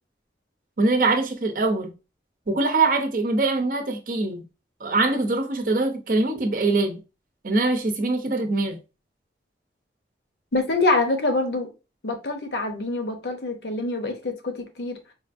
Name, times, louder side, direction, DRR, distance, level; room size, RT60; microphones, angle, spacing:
voice 1, 0.8-1.9 2.5-4.4 4.8-7.0 7.4-8.8, right 3 dB, 50° right, 0.7 m, -23 dB
voice 2, 10.5-11.7 12.0-15.0, left 2 dB, 70° left, 0.8 m, -25 dB
4.9 x 2.5 x 2.5 m
head